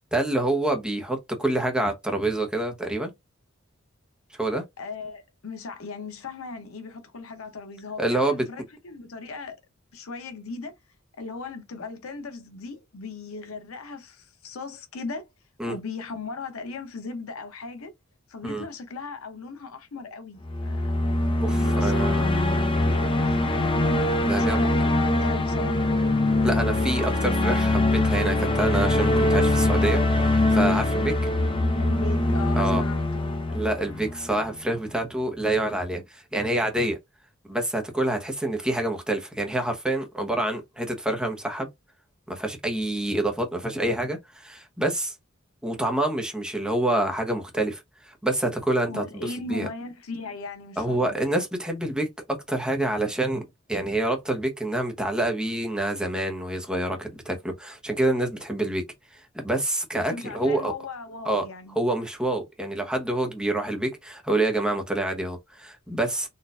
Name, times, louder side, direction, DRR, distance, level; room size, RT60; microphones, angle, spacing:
voice 1, 0.1-3.1 4.4-4.6 8.0-8.4 15.6-15.7 18.4-18.6 21.4-22.3 24.3-24.8 26.4-30.3 30.5-31.1 32.6-32.8 33.5-37.0 37.5-41.7 42.3-45.1 45.6-49.7 50.8-58.8 59.1-60.7 61.2-61.4 61.7-66.3, right 1 dB, 5° right, 0.8 m, -27 dB
voice 2, 4.8-9.6 9.9-10.7 11.2-15.3 15.7-17.9 18.3-20.9 21.5-25.8 31.8-33.5 48.9-51.2 60.0-61.8, left 4 dB, 90° left, 0.7 m, -38 dB
sound 1, 20.4-34.6, left 2 dB, 25° left, 0.5 m, -23 dB
4.1 x 2.4 x 2.4 m
head